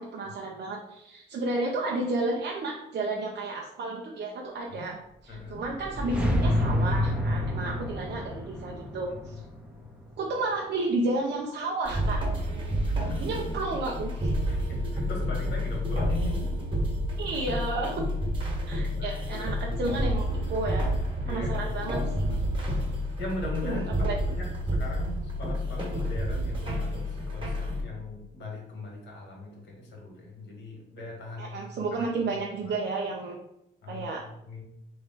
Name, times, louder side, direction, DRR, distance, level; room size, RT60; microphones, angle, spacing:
voice 1, 0.0-5.0 5.2-9.4 10.2-12.2 13.2-14.3 17.2-18.1 18.7-20.9 21.3-22.3 23.6-24.2 31.4-33.4 33.9-34.2, right 2 dB, 55° right, -1 dB, 0.7 m, -32 dB
voice 2, 5.3-5.6 13.0-13.2 14.5-16.5 19.0-19.7 21.2-22.4 23.2-32.0 32.6-32.8 33.8-34.6, left 2 dB, 65° left, -1 dB, 1.7 m, -40 dB
sound 1, 5.4-10.5, left 1 dB, 5° right, 0.8 m, -29 dB
sound 2, 11.8-27.8, equal, 25° right, 1.5 m, -29 dB
3.4 x 3.2 x 4.5 m, 0.84 s
cardioid pair, 90°, 20 cm